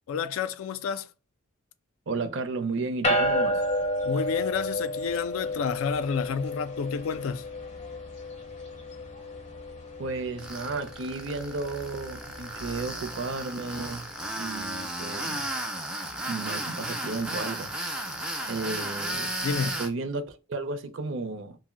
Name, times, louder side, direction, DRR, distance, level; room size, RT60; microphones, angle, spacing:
voice 1, 0.1-1.1 4.0-7.4 19.4-19.8, left 6 dB, 85° left, 0.3 m, -30 dB
voice 2, 2.1-3.6 10.0-14.1 14.4-15.5 16.3-17.7 18.5-19.3 19.6-21.6, right 3 dB, 65° right, 0.5 m, -33 dB
sound 1, 3.0-14.6, left 1 dB, 35° left, 0.6 m, -32 dB
Tools, 10.4-19.9, right 1 dB, 5° right, 0.3 m, -34 dB
2.5 x 2.0 x 3.7 m
head